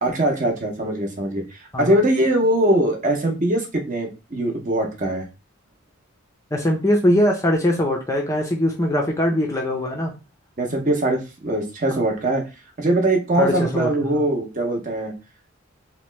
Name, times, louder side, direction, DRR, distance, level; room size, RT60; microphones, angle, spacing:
voice 1, 0.0-5.2 10.6-12.4 12.8-15.1, right 1 dB, 35° right, 2 dB, 0.7 m, -22 dB
voice 2, 6.5-10.1 13.4-14.2, left 1 dB, 15° left, 0 dB, 0.5 m, -21 dB
2.9 x 2.1 x 3.1 m, 0.27 s
head